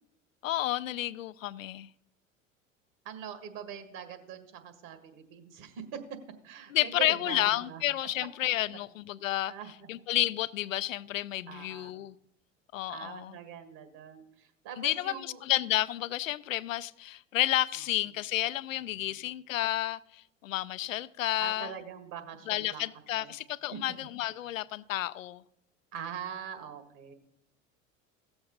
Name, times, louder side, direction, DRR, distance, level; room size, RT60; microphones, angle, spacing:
voice 1, 0.4-1.9 6.7-9.5 9.9-12.1 12.7-13.3 14.8-21.7 22.5-25.4, left 14 dB, 80° left, 0.5 m, -31 dB
voice 2, 3.1-6.2 6.4-7.8 9.5-9.9 11.4-11.9 12.9-15.4 19.0-19.3 21.4-22.9 23.2-23.3 23.7-24.1 25.9-27.1, right 8 dB, 55° right, 1.8 m, -43 dB
16.5 x 7.0 x 4.0 m
figure-of-eight pair, 75°, 39 cm